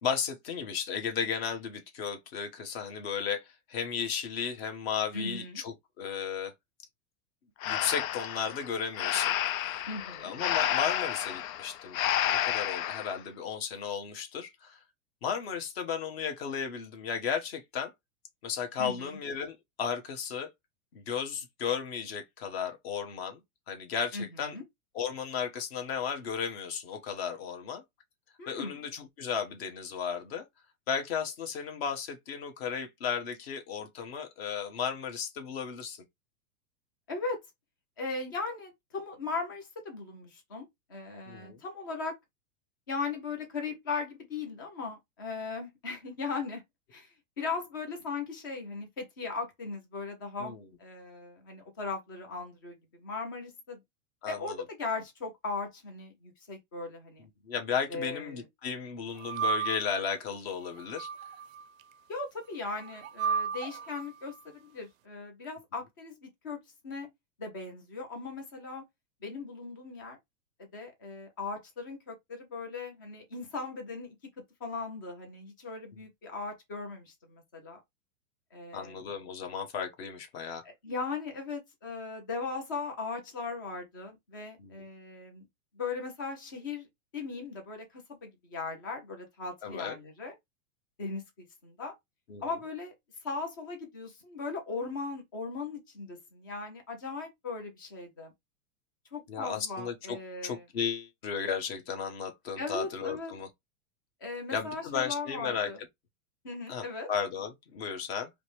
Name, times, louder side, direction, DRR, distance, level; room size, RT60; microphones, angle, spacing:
voice 1, 0.0-6.5 7.7-9.9 10.2-14.8 15.2-17.9 18.4-20.5 20.9-23.4 23.7-24.6 24.9-27.8 28.5-30.4 30.9-36.0 41.3-41.6 50.4-50.7 54.2-54.6 57.4-61.1 78.7-80.6 84.6-84.8 89.6-90.0 92.3-92.4 99.3-100.2 100.4-103.5 104.5-105.7 106.7-108.3, left 7 dB, 45° left, 1.1 m, -34 dB
voice 2, 5.1-5.6 9.9-10.3 18.8-19.2 24.1-24.3 24.5-24.6 28.4-28.9 37.1-37.4 38.0-42.2 42.9-46.6 46.9-53.8 54.3-57.2 57.9-58.4 62.1-67.1 67.4-68.8 69.2-70.2 70.6-74.2 74.6-77.8 78.5-79.0 80.6-85.4 85.7-86.9 87.1-90.3 91.0-91.9 92.4-92.9 93.2-98.3 99.1-100.6 102.6-103.3 104.2-105.8 106.4-107.1, left 4 dB, 15° left, 0.4 m, -38 dB
Breathing, 7.6-13.1, left 12 dB, 70° left, 0.5 m, -31 dB
sound 1, 59.2-60.0 60.8-61.6 62.6-64.1, right 6 dB, 65° right, 0.5 m, -33 dB
5.0 x 2.0 x 3.0 m
supercardioid pair, 160°, 43 cm